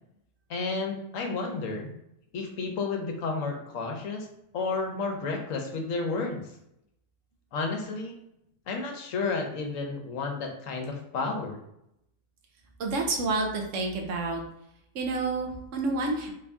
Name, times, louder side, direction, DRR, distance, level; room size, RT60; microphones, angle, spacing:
voice 1, 0.5-1.9 2.3-4.3 4.5-6.4 7.5-8.2 8.7-11.6, left 4 dB, 70° left, 3 dB, 1.1 m, -31 dB
voice 2, 12.8-14.4 14.9-16.3, right 3 dB, 65° right, 2 dB, 1.1 m, -29 dB
3.5 x 2.6 x 3.4 m, 0.79 s
omnidirectional pair, 1.4 m